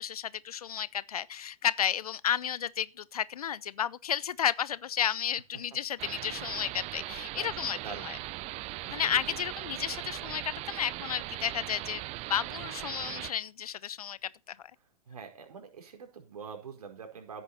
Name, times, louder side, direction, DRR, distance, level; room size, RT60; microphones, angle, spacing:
voice 1, 0.0-8.2 8.9-12.0 12.3-14.7, left 9 dB, 70° left, 0.9 m, -32 dB
sound 1, 6.0-13.3, right 18 dB, 35° right, 0.7 m, -39 dB
voice 2, 7.7-8.1 8.4-8.6 8.8-9.0 15.1-17.4, right 6 dB, 70° right, 5.0 m, -45 dB
16.5 x 8.8 x 4.3 m
figure-of-eight pair, 105°, 20 cm